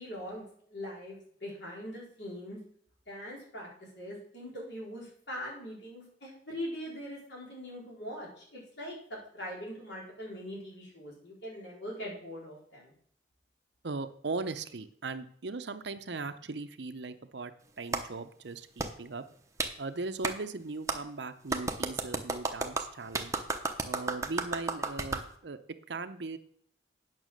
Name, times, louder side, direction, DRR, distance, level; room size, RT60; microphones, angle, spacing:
voice 1, 0.0-2.6 3.1-3.7 3.9-12.9, equal, 70° left, -3 dB, 4.5 m, -42 dB
voice 2, 13.8-17.5 17.8-19.2 19.8-23.3 23.8-25.6 25.9-26.4, right 3 dB, 65° right, 10 dB, 0.7 m, -38 dB
Clapping, 17.9-18.0 18.8-18.9 19.6-19.7 20.2-20.3 20.9-21.0 21.5-25.2, right 3 dB, 15° right, 0.8 m, -32 dB
9.1 x 6.1 x 6.4 m, 0.64 s
head